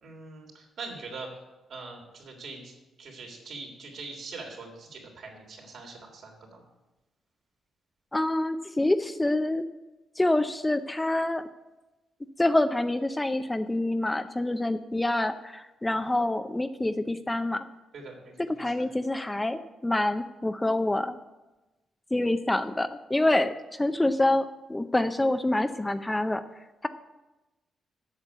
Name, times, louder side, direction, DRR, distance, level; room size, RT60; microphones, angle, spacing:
voice 1, 0.0-1.3 1.7-2.7 3.0-6.6 17.9-18.5 18.8-18.9, right 3 dB, 70° right, 0 dB, 3.1 m, -42 dB
voice 2, 8.1-9.6 10.2-11.4 12.4-17.6 18.4-21.2 22.1-24.4 24.7-26.4 26.8-26.9, left 1 dB, 15° left, 9 dB, 0.5 m, -26 dB
8.3 x 6.6 x 8.2 m, 1.0 s
cardioid pair, 100°, 0 cm